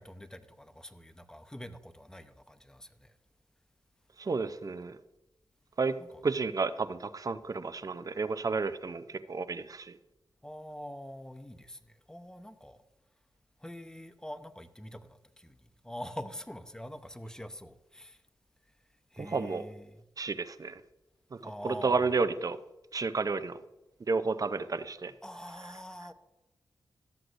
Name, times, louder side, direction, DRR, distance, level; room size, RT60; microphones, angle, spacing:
voice 1, 0.0-3.1 6.1-6.2 10.4-11.8 12.1-12.8 13.6-15.6 15.8-18.2 19.1-20.0 21.4-22.1 25.2-26.1, equal, 10° left, 0.8 m, -44 dB
voice 2, 4.2-5.0 5.8-5.9 6.2-9.9 19.2-19.6 20.2-20.7 21.4-22.6 22.9-23.6 24.1-25.1, right 4 dB, 45° right, 0.6 m, -31 dB
13.0 x 7.7 x 2.6 m
cardioid pair, 50°, 9 cm